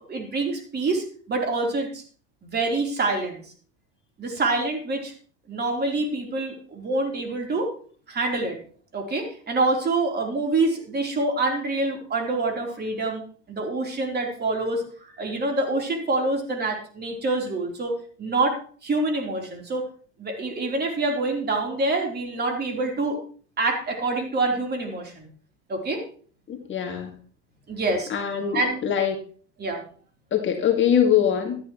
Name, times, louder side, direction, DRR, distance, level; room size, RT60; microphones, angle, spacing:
voice 1, 0.1-2.0 2.4-3.4 4.2-5.1 5.5-7.7 8.1-8.6 8.9-13.2 13.5-14.8 15.1-19.9 20.2-23.2 23.6-25.3 25.7-26.0 27.7-28.1 28.5-28.8 29.6-29.8, right 2 dB, 30° right, 2 dB, 3.7 m, -26 dB
voice 2, 26.5-27.1 28.1-29.2 30.3-31.6, left 9 dB, 35° left, 4 dB, 2.0 m, -23 dB
13.0 x 11.0 x 3.1 m, 0.43 s
hypercardioid pair, 100°, 35 cm